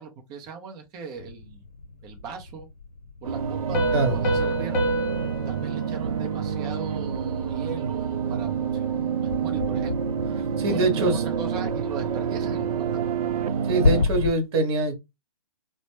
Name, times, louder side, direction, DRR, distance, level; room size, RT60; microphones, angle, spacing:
voice 1, 0.0-1.6 2.0-2.7 3.2-4.9 5.5-13.1, right 5 dB, 20° right, 0.6 m, -39 dB
sound 1, 1.2-14.3, left 3 dB, 70° left, 0.6 m, -34 dB
sound 2, 3.2-14.0, right 7 dB, 65° right, 0.5 m, -28 dB
Piano, 3.7-7.2, right 1 dB, 35° left, 1.0 m, -29 dB
voice 2, 10.6-11.2 13.7-14.9, right 2 dB, 40° right, 1.1 m, -23 dB
3.0 x 2.1 x 3.0 m
figure-of-eight pair, 130°, 20 cm